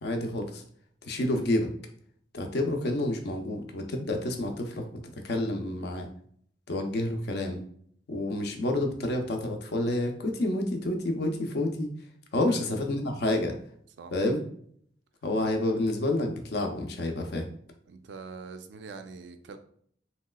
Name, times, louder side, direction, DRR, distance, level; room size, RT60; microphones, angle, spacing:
voice 1, 0.0-0.6 1.1-1.7 2.3-4.8 5.2-6.1 6.7-7.6 8.1-11.9 12.3-13.5 14.1-14.4 15.2-17.5, left 1 dB, 60° left, 4 dB, 0.5 m, -29 dB
voice 2, 17.9-19.6, right 4 dB, 70° right, 8 dB, 0.3 m, -43 dB
3.1 x 2.8 x 2.2 m, 0.62 s
head